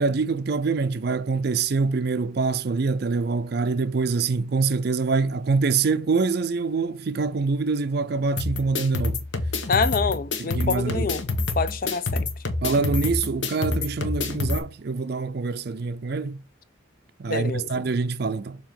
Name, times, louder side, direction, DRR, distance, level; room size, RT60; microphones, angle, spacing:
voice 1, 0.0-9.2 10.4-11.1 12.6-16.4 17.2-18.6, right 4 dB, 50° right, 0.4 m, -25 dB
sound 1, 8.4-14.6, left 3 dB, 65° left, 1.2 m, -27 dB
voice 2, 9.7-11.2 11.6-12.3 17.3-17.7, left 5 dB, 45° left, 0.4 m, -26 dB
7.2 x 2.9 x 5.3 m
head